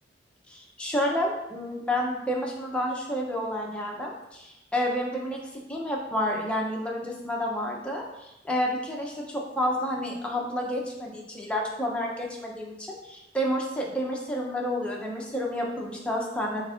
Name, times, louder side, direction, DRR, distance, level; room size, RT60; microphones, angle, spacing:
voice 1, 0.5-16.6, equal, 5° left, -1 dB, 0.5 m, -30 dB
4.2 x 3.9 x 2.4 m, 0.92 s
head